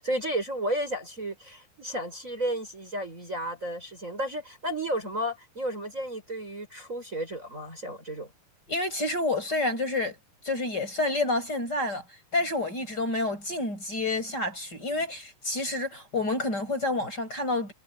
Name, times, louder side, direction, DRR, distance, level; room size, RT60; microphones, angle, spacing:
voice 1, 0.0-8.3, right 1 dB, 20° right, 6.2 m, -32 dB
voice 2, 8.7-10.2 10.4-12.0 12.3-17.7, left 2 dB, 30° left, 7.7 m, -29 dB
omnidirectional pair, 3.9 m